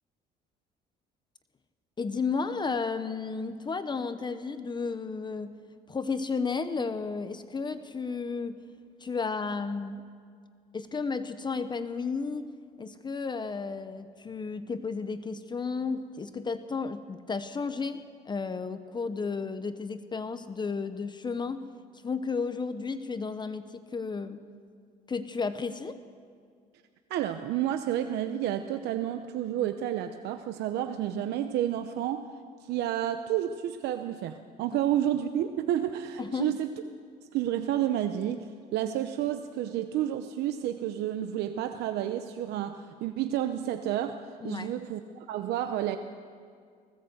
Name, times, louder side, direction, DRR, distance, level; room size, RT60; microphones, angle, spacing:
voice 1, 2.0-5.5 5.9-8.6 9.0-10.0 10.7-12.5 12.8-21.7 22.0-24.4 25.1-26.0 36.2-36.5 44.4-44.7, left 4 dB, 25° left, 11 dB, 0.9 m, -33 dB
voice 2, 27.1-32.2 32.6-36.7 37.3-46.0, right 11 dB, 80° right, 8 dB, 0.9 m, -30 dB
19.5 x 17.0 x 7.9 m, 2.1 s
cardioid pair, 110°, 17 cm